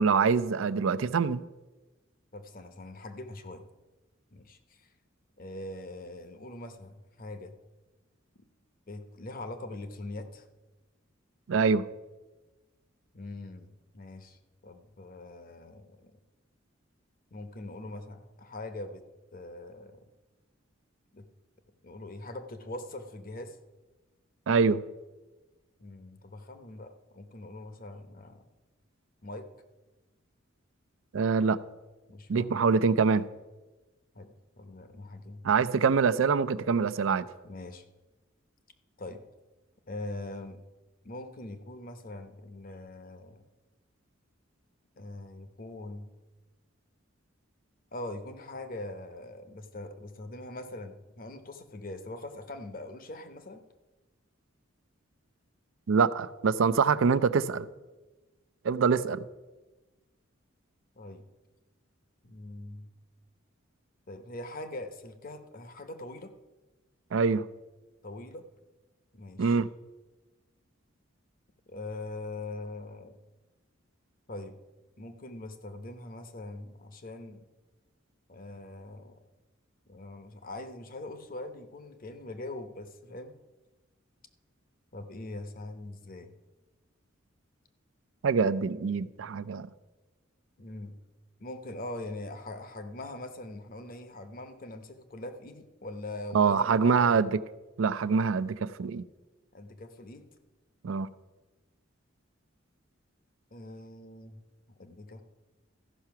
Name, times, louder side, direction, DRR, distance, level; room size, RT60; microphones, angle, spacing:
voice 1, 0.0-1.4 11.5-11.8 24.5-24.8 31.1-31.6 32.3-33.3 35.4-37.3 55.9-57.7 58.6-59.2 67.1-67.4 69.4-69.7 88.2-89.7 96.3-97.3 97.8-99.0 100.8-101.1, right 5 dB, 75° right, 0.4 m, -25 dB
voice 2, 2.3-3.7 4.3-4.9 5.4-7.6 8.9-10.5 13.1-16.1 17.3-19.0 19.3-20.0 21.1-21.3 21.8-23.6 25.8-28.4 29.2-29.5 32.1-32.5 34.1-35.5 37.4-37.8 39.0-39.2 39.9-40.6 41.0-43.4 45.0-46.1 47.9-53.6 61.0-61.2 62.2-62.9 64.1-66.3 68.0-68.4 69.1-69.6 71.7-73.2 74.3-74.6 75.0-77.5 78.3-79.2 79.9-83.3 84.9-86.4 90.6-91.0 91.4-97.2 99.5-100.3 103.5-104.4 104.7-105.2, left 2 dB, 45° left, 0.8 m, -42 dB
14.0 x 5.6 x 5.8 m
head